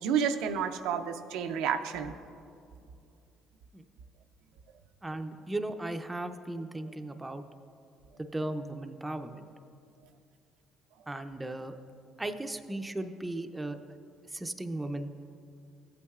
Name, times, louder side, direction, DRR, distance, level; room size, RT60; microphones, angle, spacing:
voice 1, 0.0-2.1, right 7 dB, 85° right, 7 dB, 0.5 m, -30 dB
voice 2, 5.0-7.4 8.3-9.5 11.1-11.7 12.2-13.8 14.3-15.1, right 2 dB, 15° right, 7 dB, 0.5 m, -36 dB
15.0 x 8.3 x 2.4 m, 2.4 s
supercardioid pair, 85°, 0 cm